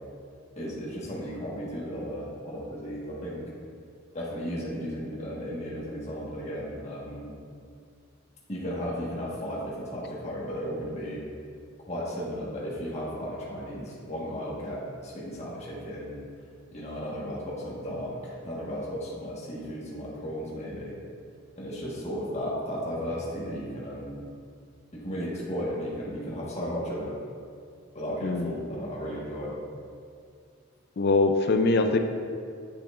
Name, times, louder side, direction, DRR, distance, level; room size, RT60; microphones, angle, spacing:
voice 1, 0.6-3.5 4.1-7.3 8.5-11.2 11.9-16.2 16.7-21.0 21.6-24.2 24.9-27.1 27.9-29.5, equal, 35° left, -6 dB, 1.3 m, -35 dB
voice 2, 28.2-28.5 31.0-32.0, left 3 dB, 50° left, 6 dB, 0.4 m, -22 dB
8.4 x 5.8 x 2.4 m, 2.3 s
head